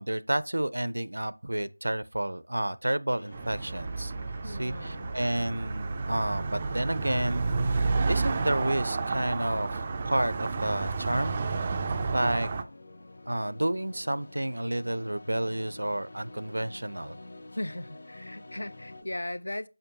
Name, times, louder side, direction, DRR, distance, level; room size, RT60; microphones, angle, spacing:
voice 1, 0.0-4.1 4.4-7.8 8.1-11.4 12.1-12.5 13.3-17.2, right 1 dB, 85° right, 0.6 m, -30 dB
sound 1, 3.1-19.0, left 2 dB, 40° left, 0.8 m, -49 dB
sound 2, 3.3-12.6, right 4 dB, 15° right, 0.3 m, -31 dB
voice 2, 4.4-5.1 17.5-19.7, left 1 dB, 70° left, 0.6 m, -37 dB
6.6 x 5.6 x 2.8 m
figure-of-eight pair, 175°, 0 cm